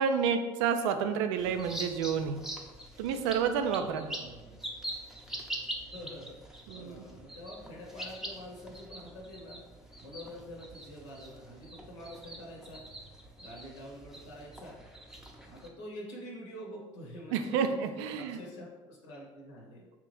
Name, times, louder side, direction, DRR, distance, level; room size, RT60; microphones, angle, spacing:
voice 1, 0.0-2.4 3.0-4.1 6.7-7.0 17.3-18.4, right 7 dB, 70° right, 8 dB, 0.4 m, -29 dB
sound 1, 1.4-15.7, right 1 dB, 5° right, 0.6 m, -44 dB
voice 2, 3.9-4.6 5.9-9.6 10.0-12.8 13.4-14.8 15.4-17.7 18.2-19.9, equal, 80° left, -3 dB, 0.9 m, -46 dB
3.5 x 2.9 x 3.1 m, 1.2 s
hypercardioid pair, 65°, 16 cm